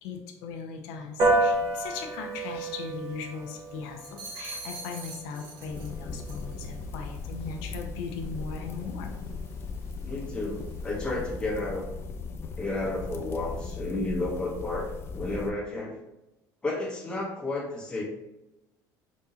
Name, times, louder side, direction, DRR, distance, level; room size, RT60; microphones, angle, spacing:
voice 1, 0.0-9.1, left 5 dB, 85° left, 3 dB, 0.7 m, -38 dB
Piano, 1.2-10.9, right 2 dB, 50° right, 1.3 m, -33 dB
sound 1, 4.0-5.9 6.2-6.5, right 3 dB, 75° right, 1.5 m, -41 dB
sound 2, 5.7-15.5, left 4 dB, 30° left, 0.4 m, -38 dB
voice 2, 10.0-11.8 12.6-14.9 15.1-16.0 16.6-18.0, left 2 dB, 10° left, -5 dB, 1.3 m, -32 dB
5.2 x 3.6 x 2.8 m, 0.96 s
cardioid pair, 160°, 8 cm